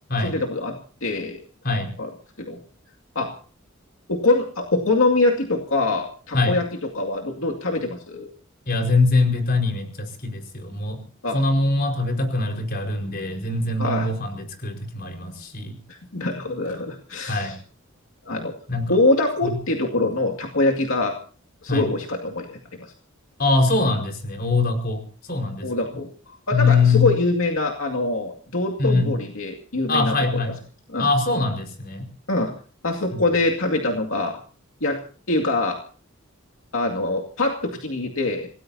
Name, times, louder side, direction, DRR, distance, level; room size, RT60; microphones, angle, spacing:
voice 1, 0.2-1.4 2.0-2.1 2.4-2.6 3.2-3.3 4.1-6.7 6.9-8.3 11.2-11.4 13.8-14.1 15.9-17.6 18.2-18.5 18.9-21.1 21.6-22.9 25.6-30.2 30.9-31.1 32.3-32.5 32.8-34.4 34.8-35.0 35.3-35.8 36.7-38.5, left 2 dB, 75° left, 1 dB, 2.3 m, -24 dB
voice 2, 8.7-11.0 11.3-15.7 17.2-17.5 18.7-19.0 19.4-19.6 21.7-21.8 23.4-25.0 25.3-25.7 26.5-27.1 28.8-29.2 29.9-30.5 31.0-32.1 33.1-33.2, left 3 dB, 45° left, 4 dB, 4.8 m, -22 dB
27.0 x 18.5 x 2.8 m, 0.40 s
head